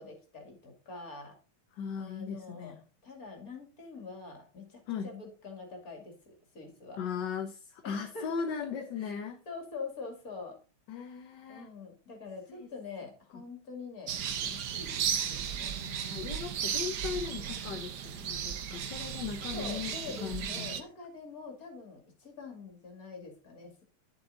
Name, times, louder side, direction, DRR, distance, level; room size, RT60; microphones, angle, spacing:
voice 1, 0.0-1.4 2.0-2.8 3.0-7.0 7.8-10.6 11.5-14.1 14.4-15.7 19.5-23.8, left 4 dB, 45° left, 3 dB, 2.8 m, -45 dB
voice 2, 1.8-2.8 4.9-5.1 7.0-9.4 10.9-11.7 12.5-12.7 15.8-20.8, left 6 dB, 65° left, 6 dB, 1.5 m, -38 dB
sound 1, 14.1-20.8, right 8 dB, 60° right, 1.3 m, -35 dB
11.0 x 7.1 x 4.0 m, 0.35 s
omnidirectional pair, 2.3 m